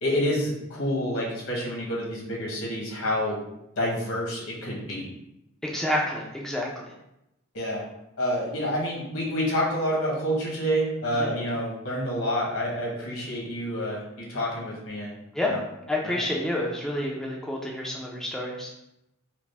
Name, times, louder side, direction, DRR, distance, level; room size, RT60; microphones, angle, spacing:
voice 1, 0.0-3.4 3.8-5.1 7.5-7.8 8.2-15.1 15.4-15.6 16.0-16.2, equal, 75° left, -3 dB, 1.3 m, -28 dB
voice 2, 5.6-6.9 11.2-11.3 15.3-15.6 15.9-18.7, left 1 dB, ahead, -3 dB, 0.4 m, -29 dB
4.8 x 2.0 x 3.3 m, 0.86 s
head